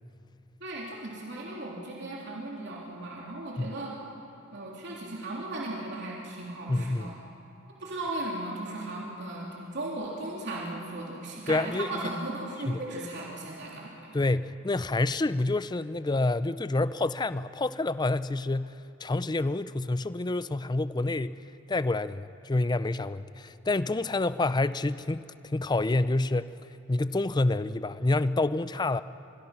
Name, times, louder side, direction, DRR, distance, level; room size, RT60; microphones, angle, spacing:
voice 1, 0.6-4.0 4.5-7.2 7.8-14.1, right 2 dB, 60° right, -4 dB, 3.4 m, -36 dB
voice 2, 6.7-7.1 11.5-12.0 12.7-12.8 14.1-21.4 21.7-26.5 26.9-29.0, left 2 dB, 20° left, 15 dB, 0.5 m, -28 dB
26.5 x 21.0 x 5.9 m, 2.8 s
head